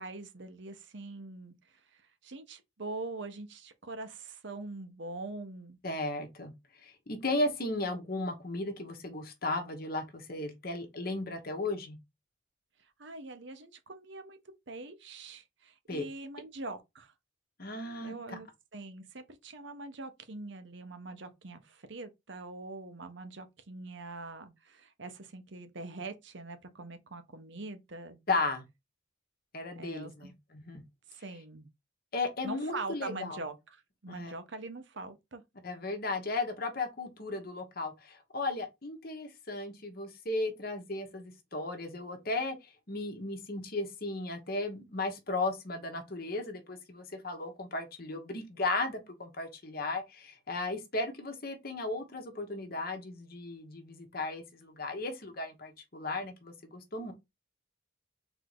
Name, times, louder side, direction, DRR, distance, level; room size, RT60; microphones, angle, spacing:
voice 1, 0.0-5.8 13.0-14.4 14.7-17.1 18.0-28.2 29.7-30.3 31.1-31.7 32.4-35.4, right 3 dB, 60° right, 0.9 m, -43 dB
voice 2, 5.8-6.5 6.8-12.0 15.9-16.0 17.6-18.4 28.3-28.6 29.5-30.8 32.1-33.4 34.1-34.3 35.6-57.1, left 2 dB, 50° left, 1.1 m, -35 dB
4.0 x 2.7 x 4.8 m
head